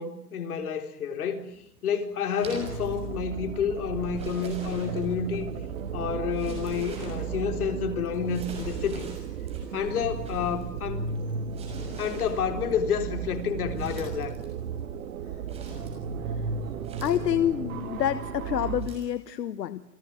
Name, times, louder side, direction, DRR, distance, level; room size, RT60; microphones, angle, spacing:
voice 1, 0.0-1.5 1.8-5.5 5.9-9.1 9.7-11.1 12.0-14.3, left 7 dB, 65° left, 4.4 m, -29 dB
sound 1, 1.4-19.2, right 3 dB, 10° right, 6.5 m, -48 dB
sound 2, 2.4-18.8, right 6 dB, 60° right, 3.1 m, -35 dB
Meow, 5.4-16.7, right 4 dB, 80° right, 6.9 m, -49 dB
voice 2, 17.0-19.8, left 11 dB, 85° left, 1.5 m, -28 dB
29.5 x 18.5 x 9.7 m
hypercardioid pair, 175°, 48 cm